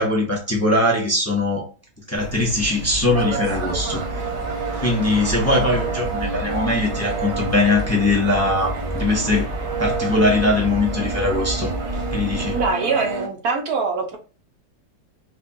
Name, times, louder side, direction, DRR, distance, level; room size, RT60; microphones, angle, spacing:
voice 1, 0.0-1.7 2.1-4.2 4.8-9.5 9.8-11.7 12.1-12.6, left 2 dB, 20° left, -2 dB, 0.4 m, -21 dB
sound 1, 2.1-12.7, equal, 40° right, 1.8 m, -31 dB
sound 2, 3.1-13.3, right 5 dB, 90° right, 1.5 m, -29 dB
voice 2, 12.5-14.2, right 4 dB, 60° right, 3 dB, 1.3 m, -23 dB
4.9 x 2.3 x 2.6 m, 0.36 s
omnidirectional pair, 1.9 m